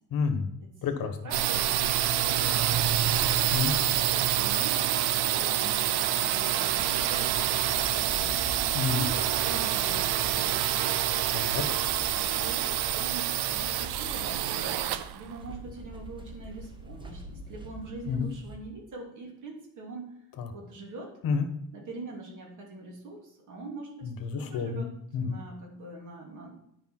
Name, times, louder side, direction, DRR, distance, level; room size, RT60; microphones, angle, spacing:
voice 1, 0.1-0.5 0.8-1.2 3.5-3.7 8.7-9.1 11.3-11.6 18.1-18.3 20.4-20.5 21.2-21.5 24.0-25.4, left 5 dB, 60° left, 7 dB, 1.3 m, -29 dB
voice 2, 1.2-2.7 3.6-11.0 12.1-20.2 20.5-21.2 21.7-24.9 25.2-26.5, right 2 dB, 50° right, 0 dB, 2.9 m, -43 dB
sound 1, 1.3-16.9, right 11 dB, 90° right, 0.7 m, -27 dB
sound 2, 6.6-18.6, right 1 dB, 10° right, 0.9 m, -44 dB
10.0 x 5.1 x 6.0 m, 0.75 s
cardioid pair, 165°, 38 cm